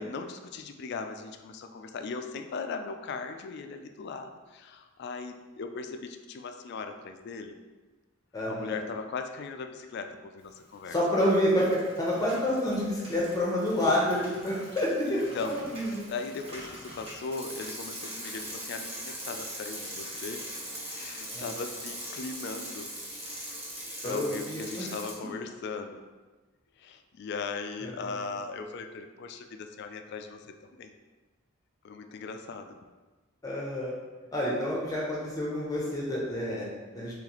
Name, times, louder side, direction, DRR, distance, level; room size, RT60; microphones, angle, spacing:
voice 1, 0.0-7.6 8.5-11.0 15.1-15.7 16.1-20.4 20.9-22.9 24.0-26.0 26.8-30.9 31.8-32.8, left 4 dB, 55° left, 7 dB, 0.3 m, -38 dB
voice 2, 8.3-8.8 10.9-16.1 21.3-21.5 24.0-24.9 27.8-28.2 33.4-33.9 34.3-37.1, equal, 20° left, -5 dB, 0.7 m, -28 dB
Bicycle, 10.7-11.1 11.4-25.1, right 1 dB, 30° right, 1.0 m, -41 dB
3.9 x 3.2 x 3.0 m, 1.3 s
head